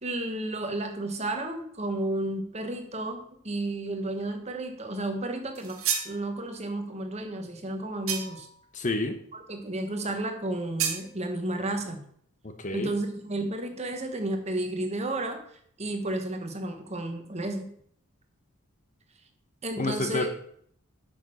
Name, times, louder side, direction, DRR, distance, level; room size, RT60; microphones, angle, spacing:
voice 1, 0.0-5.8 6.0-8.5 9.3-12.0 12.7-15.4 15.8-17.7 19.6-20.3, right 1 dB, 30° right, 5 dB, 1.4 m, -32 dB
sound 1, 5.5-6.2 8.1-8.5 10.8-11.1, right 7 dB, 70° right, 1.8 m, -30 dB
voice 2, 8.7-9.2 12.4-12.9 19.8-20.3, left 2 dB, 35° left, 7 dB, 1.0 m, -29 dB
9.0 x 6.3 x 6.3 m, 0.64 s
head